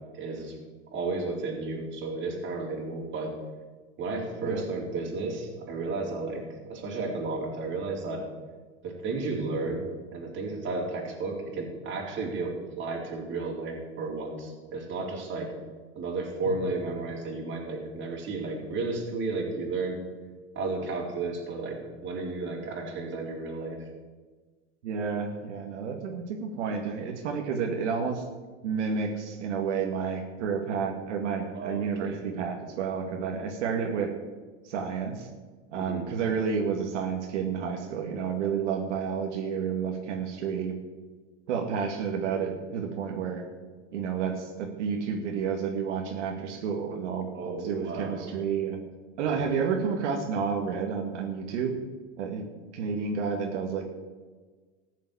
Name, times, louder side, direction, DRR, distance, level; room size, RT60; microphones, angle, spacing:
voice 1, 0.1-0.6 0.9-3.3 4.0-8.2 8.8-15.5 16.0-20.0 20.5-23.9 31.5-32.2 35.7-36.1 47.3-48.3 49.2-49.5, right 3 dB, 35° right, -1 dB, 4.0 m, -33 dB
voice 2, 24.8-28.2 28.6-34.1 34.6-35.3 35.7-40.8 41.5-43.4 43.9-48.8 49.2-51.8 52.2-52.4 52.7-53.9, right 6 dB, 85° right, 2 dB, 2.1 m, -30 dB
14.5 x 7.4 x 8.5 m, 1.4 s
supercardioid pair, 130°, 35 cm